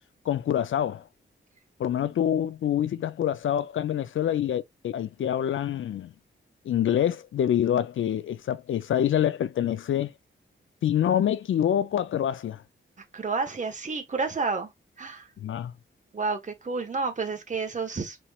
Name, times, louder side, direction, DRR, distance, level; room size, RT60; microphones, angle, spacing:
voice 1, 0.3-1.0 1.8-6.1 6.6-10.1 10.8-12.6 15.4-15.7, left 10 dB, 70° left, 0.4 m, -26 dB
voice 2, 13.1-14.7 15.0-15.3 16.1-18.2, right 4 dB, 35° right, 1.2 m, -30 dB
6.0 x 3.2 x 2.3 m
wide cardioid pair, 115°, 21 cm